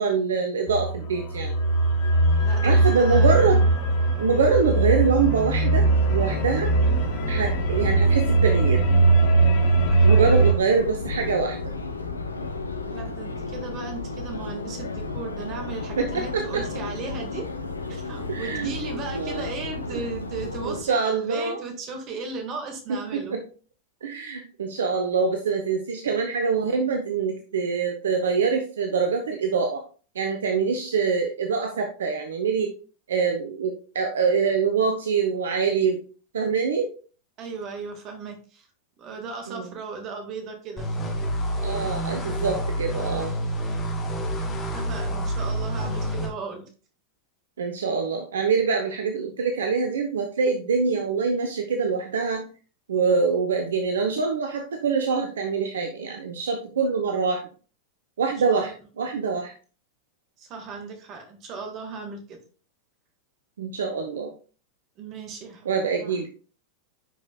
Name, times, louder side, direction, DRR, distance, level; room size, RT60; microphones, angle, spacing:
voice 1, 0.0-1.6 2.6-3.7 4.2-6.7 7.3-8.8 10.0-11.6 16.0-16.7 18.3-18.7 19.1-19.5 19.9-20.0 20.6-21.6 22.9-23.4 24.0-29.8 30.1-32.7 33.1-36.0 36.3-36.9 39.5-39.7 41.6-43.3 47.6-52.5 52.9-57.5 58.2-59.5 63.6-64.3 65.7-66.3, right 5 dB, 65° right, 5 dB, 0.7 m, -25 dB
sound 1, 0.7-10.5, right 3 dB, 45° left, 1.1 m, -20 dB
voice 2, 2.4-3.5 4.2-4.4 9.9-10.4 12.9-17.5 17.9-23.4 37.4-38.7 39.0-40.9 44.7-46.6 58.5-58.8 60.4-62.4 65.0-65.7 66.0-66.2, right 4 dB, 35° right, 4 dB, 1.7 m, -36 dB
Subway metro underground, 5.8-20.8, left 3 dB, 80° left, 0.7 m, -33 dB
sound 2, 40.8-46.3, equal, 20° left, 2.2 m, -28 dB
10.0 x 5.2 x 2.3 m, 0.38 s
figure-of-eight pair, 90°, 0 cm